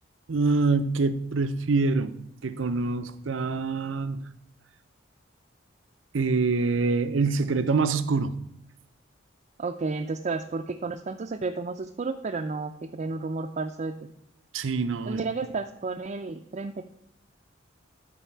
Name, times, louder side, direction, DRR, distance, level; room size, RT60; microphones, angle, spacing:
voice 1, 0.3-2.1 2.4-4.2 6.1-8.4 14.5-15.2, right 4 dB, 90° right, 0.6 m, -25 dB
voice 2, 9.6-14.1 15.1-16.8, right 3 dB, 40° right, 0.4 m, -32 dB
12.5 x 4.2 x 4.5 m
head